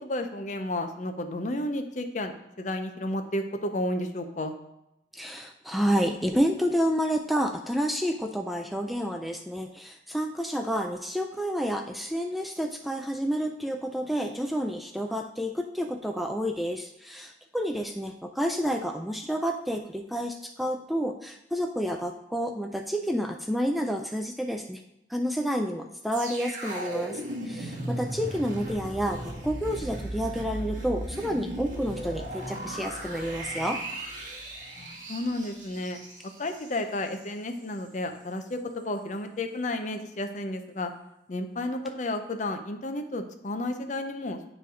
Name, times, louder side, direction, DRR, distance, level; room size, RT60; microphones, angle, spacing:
voice 1, 0.0-4.6 34.8-36.0 36.4-40.9 41.3-44.5, left 1 dB, 45° left, 7 dB, 0.6 m, -32 dB
voice 2, 5.1-24.8 25.1-33.8, equal, ahead, 4 dB, 0.3 m, -29 dB
sound 1, 26.1-37.3 37.6-37.8, right 1 dB, 45° right, 1.5 m, -37 dB
9.4 x 3.3 x 4.8 m, 0.86 s
head